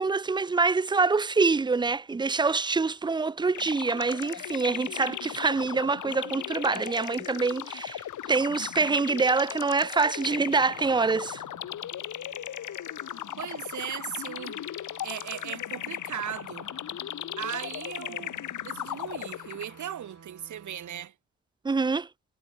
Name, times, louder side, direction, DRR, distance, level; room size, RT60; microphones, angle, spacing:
voice 1, 0.0-11.4 21.6-22.1, right 4 dB, 15° right, 0.5 m, -25 dB
sound 1, 3.5-19.9, left 11 dB, 85° left, 2.6 m, -37 dB
sound 2, 10.3-21.1, right 7 dB, 55° right, 7.7 m, -53 dB
voice 2, 13.4-14.6 15.0-16.7 17.4-18.4 18.6-21.1, right 10 dB, 75° right, 2.4 m, -37 dB
cardioid pair, 75°, 30 cm